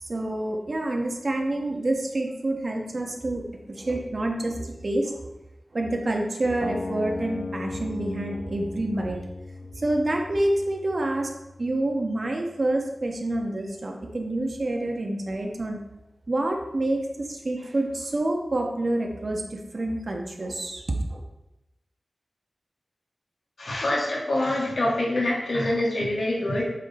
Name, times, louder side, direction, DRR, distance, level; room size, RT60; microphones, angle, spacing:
voice 1, 0.0-5.3 5.7-9.2 9.7-11.3 11.6-15.8 16.3-20.8 21.1-21.2, right 1 dB, 55° right, 1 dB, 1.2 m, -28 dB
sound 1, 6.6-12.6, left 3 dB, 55° left, 0.4 m, -38 dB
voice 2, 23.6-26.6, left 1 dB, 75° left, -3 dB, 2.0 m, -25 dB
8.2 x 3.9 x 4.3 m, 0.94 s
cardioid pair, 55°, 0 cm